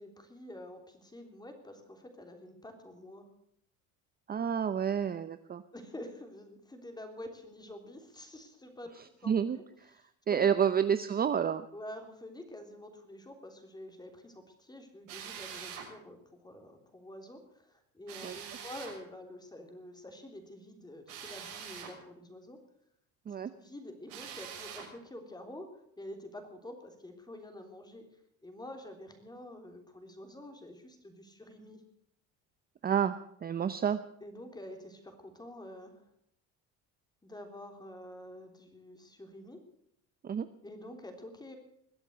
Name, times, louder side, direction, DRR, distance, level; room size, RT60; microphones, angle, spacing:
voice 1, 0.0-3.3 5.7-9.3 10.3-10.8 11.7-22.6 23.5-25.7 26.0-28.1 28.4-31.8 34.2-36.1 37.2-39.6 40.6-41.6, left 1 dB, 10° left, 5 dB, 3.5 m, -48 dB
voice 2, 4.3-5.6 9.3-9.6 10.3-11.7 18.2-18.4 23.3-23.5 32.8-34.0 40.2-40.5, right 8 dB, 25° right, 11 dB, 0.7 m, -29 dB
Drill, 15.1-15.9 18.1-19.0 21.1-22.0 24.1-24.9, right 7 dB, 90° right, 6.2 m, -44 dB
21.5 x 8.1 x 7.9 m, 0.71 s
supercardioid pair, 105°, 35 cm